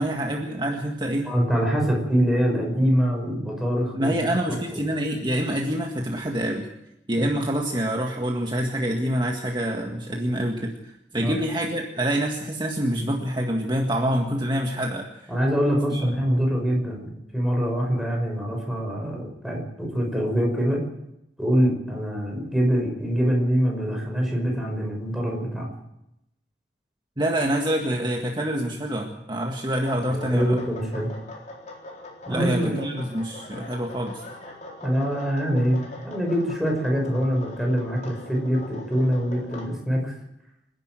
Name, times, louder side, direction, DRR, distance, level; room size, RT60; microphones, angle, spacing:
voice 1, 0.0-1.3 3.9-6.7 7.1-15.1 15.9-16.0 27.2-30.6 32.3-34.2, right 1 dB, 25° right, 1 dB, 1.9 m, -26 dB
voice 2, 1.3-4.8 7.1-7.3 11.1-11.3 15.3-20.8 21.4-25.7 30.1-31.1 32.3-33.1 34.8-40.2, equal, ahead, -1 dB, 5.6 m, -24 dB
sound 1, 29.8-39.7, left 2 dB, 45° left, 4.2 m, -42 dB
27.0 x 11.0 x 9.2 m, 0.86 s
head